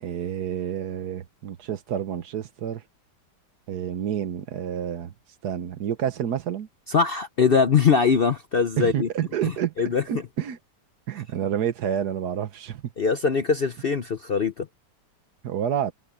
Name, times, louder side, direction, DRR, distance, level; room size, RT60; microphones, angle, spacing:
voice 1, 0.0-2.8 3.7-5.1 5.4-6.7 8.8-9.7 10.1-10.6 11.1-12.8 15.4-15.9, right 9 dB, 70° right, 1.5 m, -29 dB
voice 2, 6.9-9.1 9.4-9.5 9.8-10.0 13.0-14.7, left 5 dB, 50° left, 0.7 m, -22 dB
omnidirectional pair, 1.8 m